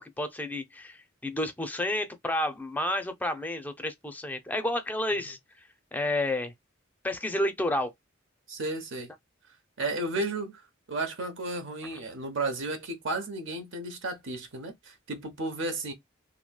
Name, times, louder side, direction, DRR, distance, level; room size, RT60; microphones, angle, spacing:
voice 1, 0.0-5.4 5.9-6.5 7.0-7.9, left 1 dB, 10° left, 0.4 m, -30 dB
voice 2, 8.5-9.1 9.8-15.9, right 2 dB, 65° right, 0.8 m, -33 dB
3.0 x 2.6 x 2.2 m
head